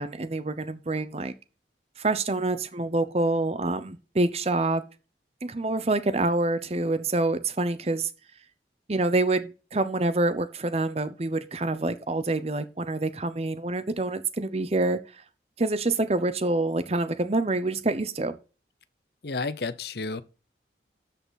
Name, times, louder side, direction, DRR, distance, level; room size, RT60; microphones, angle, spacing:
voice 1, 0.0-1.3 2.0-4.8 5.4-8.1 8.9-15.0 15.6-18.4, right 2 dB, 35° right, 0.8 m, -26 dB
voice 2, 19.2-20.2, left 3 dB, 65° left, 0.8 m, -31 dB
13.0 x 5.7 x 4.1 m
head